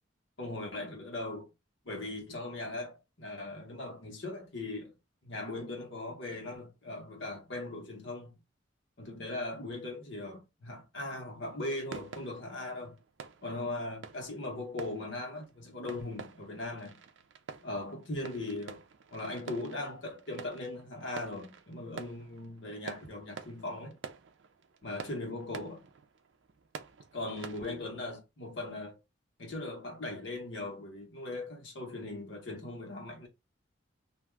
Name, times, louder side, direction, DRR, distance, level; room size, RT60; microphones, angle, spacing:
voice 1, 0.4-1.5 1.8-4.9 5.2-8.4 9.0-13.0 13.4-17.0 17.6-18.8 19.1-24.0 24.8-25.9 27.1-29.0 29.4-33.3, left 2 dB, 70° left, 1.1 m, -39 dB
sound 1, 11.9-27.9, right 5 dB, 70° right, 0.4 m, -49 dB
2.5 x 2.3 x 3.3 m
head